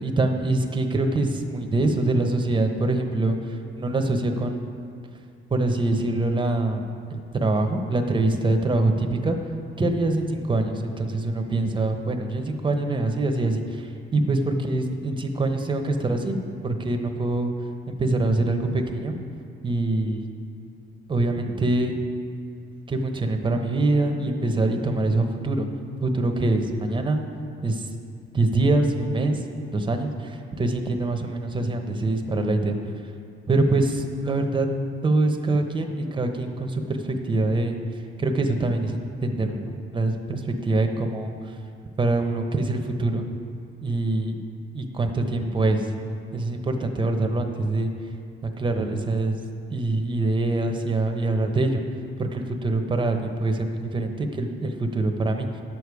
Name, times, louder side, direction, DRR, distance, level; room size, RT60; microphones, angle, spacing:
voice 1, 0.0-4.7 5.5-9.4 9.8-17.5 17.9-19.2 19.6-20.3 21.1-22.0 22.9-25.7 26.0-27.2 27.6-27.9 28.3-29.4 29.7-32.8 33.5-34.7 35.0-37.8 38.2-41.5 42.0-43.3 43.8-44.4 44.7-45.9 46.3-47.9 48.4-49.4 49.7-51.8 52.2-55.5, right 2 dB, 25° right, 5 dB, 0.9 m, -24 dB
10.0 x 6.8 x 4.8 m, 2.4 s
cardioid pair, 90°, 20 cm